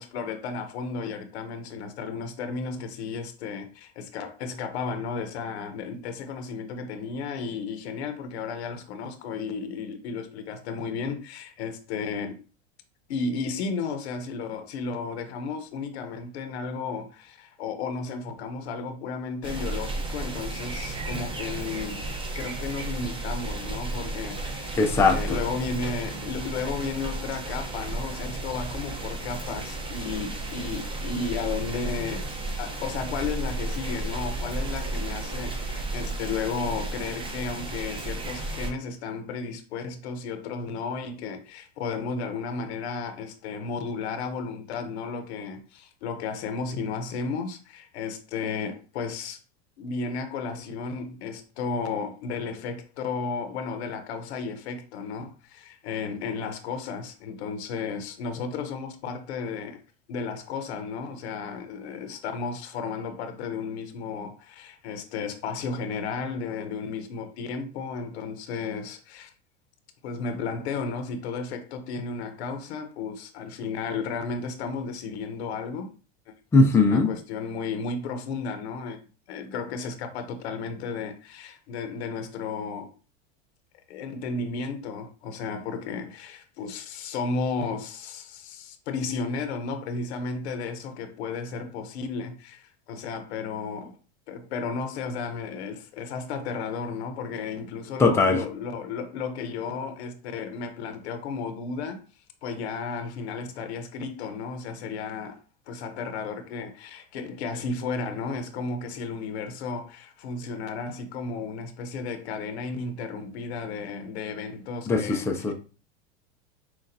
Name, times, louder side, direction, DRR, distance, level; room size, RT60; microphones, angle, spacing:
voice 1, 0.0-12.4 13.1-22.1 22.3-32.2 32.6-49.4 49.8-59.8 60.1-69.3 70.0-75.9 76.8-79.0 79.3-82.9 83.9-93.9 94.3-102.0 102.4-105.4 105.7-115.5, left 4 dB, 75° left, 0.8 m, -33 dB
sound 1, 19.4-38.7, right 2 dB, 15° right, 0.8 m, -33 dB
voice 2, 24.8-25.2 76.5-77.1 98.0-98.4 114.9-115.5, left 3 dB, 10° left, 0.4 m, -19 dB
5.9 x 2.3 x 2.7 m
supercardioid pair, 120°, 33 cm